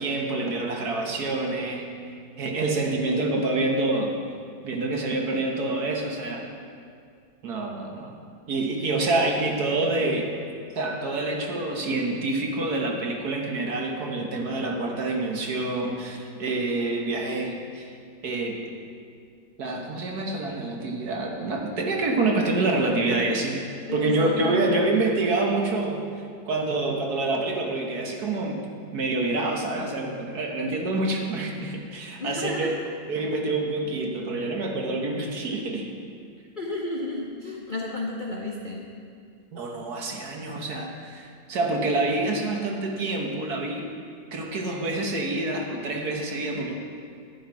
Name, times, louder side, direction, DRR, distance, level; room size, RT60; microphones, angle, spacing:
voice 1, 0.0-1.9 2.4-4.2 4.6-6.5 7.4-8.1 8.5-10.3 10.7-17.9 18.2-18.6 19.6-23.6 23.9-26.1 26.5-28.7 28.9-32.8 33.1-35.9 39.5-43.9 44.3-46.7, right 2 dB, 60° right, 1 dB, 1.6 m, -27 dB
voice 2, 8.8-9.3 10.0-10.2 23.9-24.7 32.2-32.7 36.6-38.9, left 2 dB, 45° left, -2 dB, 0.7 m, -32 dB
11.5 x 9.6 x 4.6 m, 2.2 s
omnidirectional pair, 1.9 m